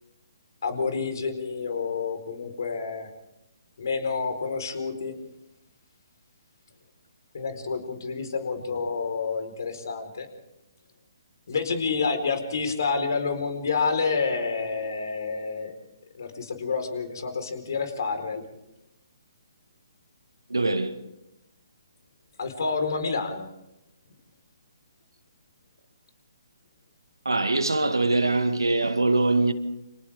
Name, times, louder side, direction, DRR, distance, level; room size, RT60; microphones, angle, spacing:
voice 1, 0.6-3.1 3.8-5.2 7.3-10.3 11.5-15.7 16.2-18.4 22.4-23.5, left 4 dB, 60° left, 4.5 m, -29 dB
voice 2, 20.5-21.0 27.3-29.5, right 2 dB, 90° right, 2.0 m, -23 dB
29.5 x 26.5 x 3.7 m
figure-of-eight pair, 140°, 2 cm